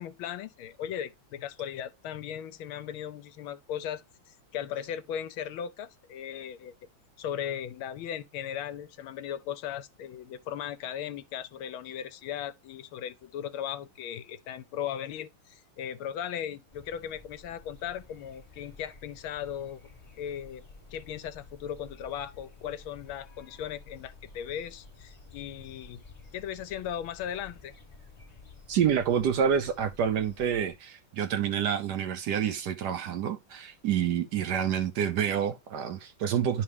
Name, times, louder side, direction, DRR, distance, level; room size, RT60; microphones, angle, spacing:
voice 1, 0.0-6.7 7.2-19.8 20.2-20.6 20.9-26.0 26.3-27.7, left 9 dB, 80° left, 1.5 m, -37 dB
sound 1, 16.7-30.7, left 3 dB, 25° left, 1.0 m, -52 dB
voice 2, 28.7-36.6, right 8 dB, 70° right, 1.0 m, -28 dB
11.0 x 3.7 x 3.4 m
omnidirectional pair, 2.3 m